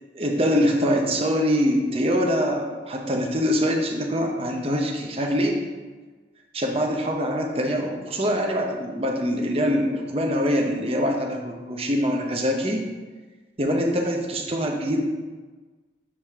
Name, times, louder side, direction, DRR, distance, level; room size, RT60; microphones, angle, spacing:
voice 1, 0.1-5.6 6.5-12.8 13.6-15.0, equal, 30° right, 1 dB, 0.8 m, -24 dB
7.3 x 5.0 x 3.6 m, 1.3 s
head